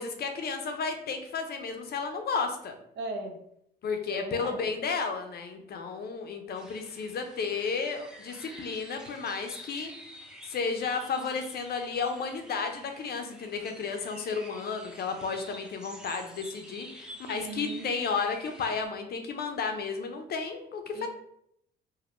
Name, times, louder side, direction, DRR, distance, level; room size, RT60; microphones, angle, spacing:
voice 1, 0.0-2.8 3.8-9.9 10.4-21.1, left 5 dB, 50° left, 5 dB, 0.6 m, -33 dB
voice 2, 3.0-3.4 4.1-4.7 17.3-18.0 20.9-21.1, right 3 dB, 55° right, 4 dB, 0.7 m, -37 dB
sound 1, 6.5-18.9, equal, 5° right, 0.6 m, -49 dB
3.4 x 2.2 x 2.5 m, 0.74 s
supercardioid pair, 60°, 21 cm